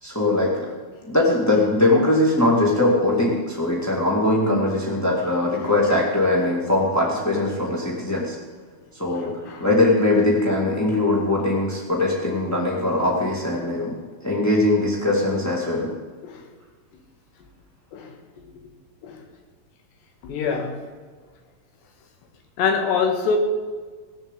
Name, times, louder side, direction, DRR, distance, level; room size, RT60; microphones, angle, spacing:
voice 1, 0.0-0.8 1.0-8.4 9.0-9.3 9.6-13.9 14.2-15.9, left 2 dB, 15° left, -4 dB, 0.6 m, -21 dB
voice 2, 9.1-9.7 16.2-16.5 17.9-18.2 19.0-19.2 20.2-20.8 22.6-23.4, left 5 dB, 90° left, 5 dB, 3.9 m, -25 dB
18.0 x 7.2 x 8.2 m, 1.5 s
omnidirectional pair, 4.7 m